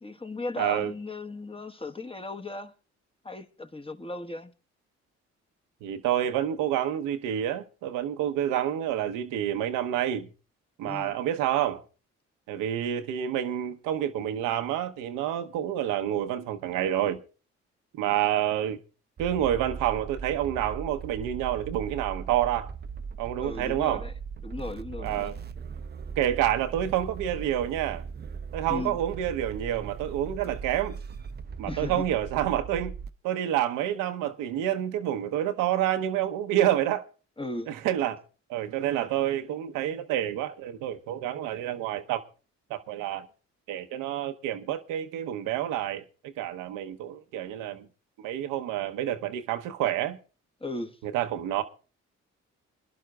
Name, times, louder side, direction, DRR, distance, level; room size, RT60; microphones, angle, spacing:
voice 1, 0.0-2.7 3.2-4.5 10.8-11.1 23.4-24.1 24.4-25.3 28.7-29.0 31.7-32.0 37.4-37.7 50.6-51.0, left 2 dB, 15° left, 1.1 m, -36 dB
voice 2, 0.6-0.9 5.8-10.3 10.8-11.8 12.5-17.2 18.0-18.8 19.2-22.7 23.2-24.1 25.0-25.3 26.2-28.1 28.5-30.9 31.6-32.9 33.2-37.0 37.7-38.2 38.5-42.2 42.7-43.3 43.7-46.0 46.4-47.9 48.2-50.2 51.1-51.6, right 11 dB, 80° right, 0.9 m, -28 dB
sound 1, 19.2-33.1, right 6 dB, 30° right, 0.6 m, -39 dB
26.5 x 11.0 x 2.3 m
hypercardioid pair, 45°, 32 cm